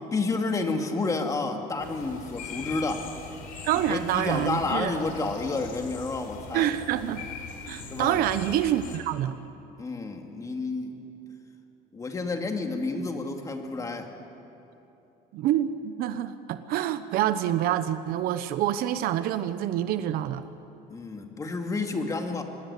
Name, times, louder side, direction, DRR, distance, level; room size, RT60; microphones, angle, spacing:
voice 1, 0.1-3.1 3.9-6.7 7.9-8.2 9.8-11.0 11.9-14.1 20.9-22.4, left 3 dB, 20° left, 4 dB, 2.4 m, -30 dB
sound 1, 1.8-9.0, left 5 dB, 60° left, 4.5 m, -41 dB
voice 2, 3.6-5.0 6.5-7.3 7.7-9.3 15.3-20.4, right 11 dB, 60° right, 12 dB, 1.0 m, -27 dB
25.5 x 21.5 x 8.4 m, 2.9 s
cardioid pair, 145°, 17 cm